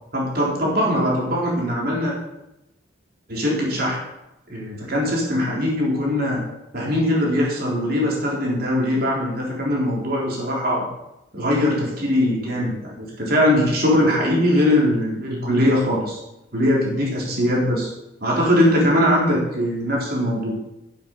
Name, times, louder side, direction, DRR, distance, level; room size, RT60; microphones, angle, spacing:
voice 1, 0.1-2.1 3.3-4.0 4.5-6.4 6.7-10.9 11.3-16.2 16.5-17.9 18.2-20.6, left 1 dB, 50° right, -3 dB, 3.9 m, -21 dB
11.5 x 7.5 x 5.3 m, 0.92 s
head